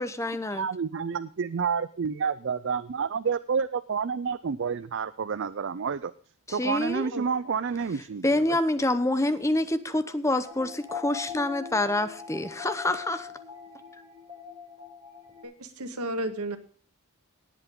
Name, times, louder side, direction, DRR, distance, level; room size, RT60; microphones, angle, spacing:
voice 1, 0.0-0.7 6.5-7.1 8.2-13.3, left 1 dB, 15° left, 12 dB, 0.8 m, -27 dB
voice 2, 0.5-6.1 6.5-8.4, right 6 dB, 55° right, 15 dB, 0.4 m, -29 dB
sound 1, 10.4-15.4, left 6 dB, 25° right, 6.9 m, -41 dB
voice 3, 15.4-16.6, right 1 dB, 90° right, 8 dB, 1.7 m, -33 dB
18.5 x 8.1 x 3.7 m, 0.42 s
head